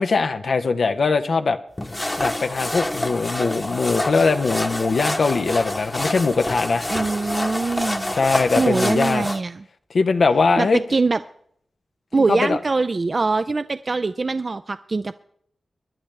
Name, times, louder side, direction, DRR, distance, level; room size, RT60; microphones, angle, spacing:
voice 1, 0.0-1.6 2.2-6.8 8.1-9.3 9.9-10.8 12.3-12.6, left 4 dB, 75° left, 7 dB, 0.7 m, -21 dB
sound 1, 1.8-9.4, left 1 dB, 20° left, 1.0 m, -27 dB
voice 2, 6.9-8.2 8.6-9.6 10.6-11.2 12.1-15.1, right 3 dB, 50° right, 11 dB, 0.4 m, -23 dB
24.5 x 10.5 x 3.3 m, 0.67 s
cardioid pair, 50°, 0 cm